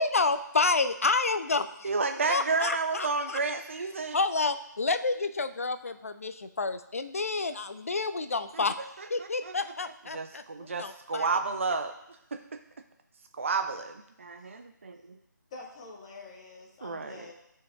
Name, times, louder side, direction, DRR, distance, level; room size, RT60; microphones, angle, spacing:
voice 1, 0.0-1.9 2.3-3.4 4.1-8.7 9.1-11.4, left 3 dB, 45° left, 11 dB, 0.4 m, -29 dB
voice 2, 1.8-4.2 9.2-9.5 10.1-11.9 12.3-12.4 13.4-15.2 16.8-17.3, right 4 dB, 40° right, 6 dB, 0.4 m, -31 dB
voice 3, 15.5-17.3, left 3 dB, 20° left, -1 dB, 0.8 m, -46 dB
13.0 x 4.5 x 2.4 m, 0.82 s
figure-of-eight pair, 155°, 10 cm